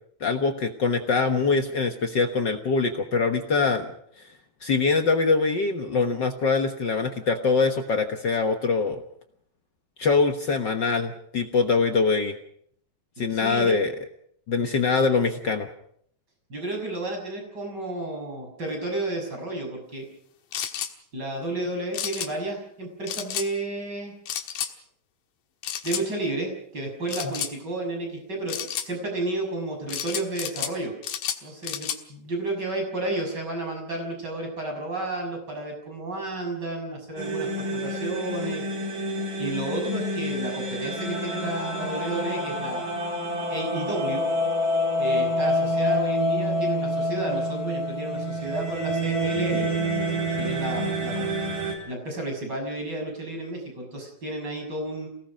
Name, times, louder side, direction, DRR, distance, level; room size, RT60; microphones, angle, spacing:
voice 1, 0.2-3.9 4.6-9.0 10.0-12.3 13.2-13.9 14.5-15.7, left 4 dB, 65° left, 5 dB, 1.1 m, -23 dB
voice 2, 13.3-13.7 16.5-20.1 21.1-24.1 25.8-28.6 28.8-30.9 31.4-38.6 39.4-42.9 43.5-44.2 45.0-49.7 50.4-51.2 51.9-55.1, right 2 dB, 30° right, 2 dB, 6.7 m, -32 dB
sound 1, 20.5-20.9 21.9-22.3 23.1-23.5 24.3-24.7 25.6-26.0 27.1-27.5 28.5-28.9 29.9-30.7 31.0-32.0, left 9 dB, 85° left, 3.2 m, -31 dB
sound 2, 37.2-51.7, equal, 70° right, 5.7 m, -27 dB
28.5 x 18.5 x 5.2 m, 0.66 s
omnidirectional pair, 3.9 m